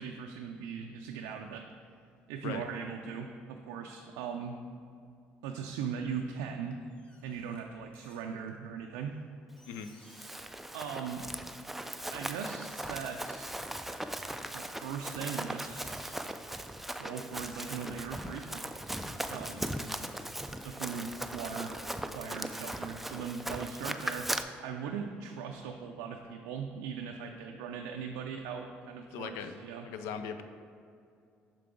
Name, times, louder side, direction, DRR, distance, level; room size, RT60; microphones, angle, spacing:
voice 1, 0.0-1.6 2.3-4.6 5.4-6.8 7.2-9.2 10.7-11.2 12.1-13.5 14.5-15.7 17.0-19.0 19.3-19.7 20.6-21.7 22.1-29.9, right 6 dB, 90° right, 3 dB, 0.3 m, -39 dB
sound 1, 6.7-8.7 9.2-9.3 9.6-10.6 10.9-11.2 11.8-11.9 12.3-14.1 14.6-16.7 17.0-17.1, left 1 dB, 25° left, 1.0 m, -61 dB
Run, 9.9-24.4, right 1 dB, 5° right, 0.3 m, -39 dB
voice 2, 29.1-29.6 29.8-30.4, left 7 dB, 80° left, 9 dB, 0.4 m, -39 dB
5.8 x 4.7 x 3.8 m, 2.4 s
supercardioid pair, 80°, 5 cm